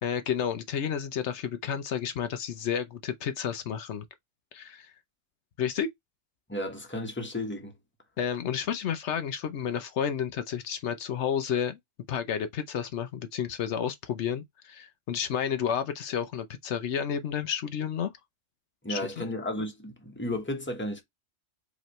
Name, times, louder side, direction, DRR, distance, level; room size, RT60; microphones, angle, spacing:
voice 1, 0.0-4.0 4.5-4.9 5.6-5.9 8.2-11.8 12.1-18.1 18.9-19.2, left 8 dB, 80° left, 1.0 m, -31 dB
voice 2, 6.5-7.7 18.8-21.0, left 1 dB, 10° left, 1.2 m, -33 dB
5.0 x 3.1 x 3.1 m
omnidirectional pair, 1.2 m